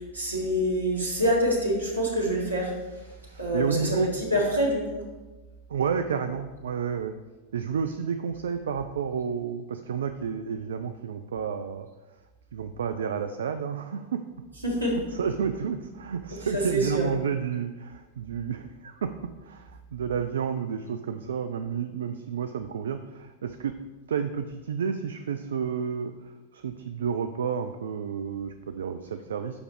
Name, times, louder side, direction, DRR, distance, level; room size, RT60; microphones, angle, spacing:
voice 1, 0.1-2.7 3.4-5.0 14.6-15.0 16.5-17.0, equal, 80° right, -2 dB, 1.9 m, -26 dB
voice 2, 3.3-4.1 5.7-7.1 7.5-11.9 12.5-14.2 14.9-23.8 24.1-29.6, right 7 dB, 65° right, 8 dB, 0.3 m, -31 dB
7.0 x 5.0 x 4.7 m, 1.2 s
figure-of-eight pair, 90°, 0 cm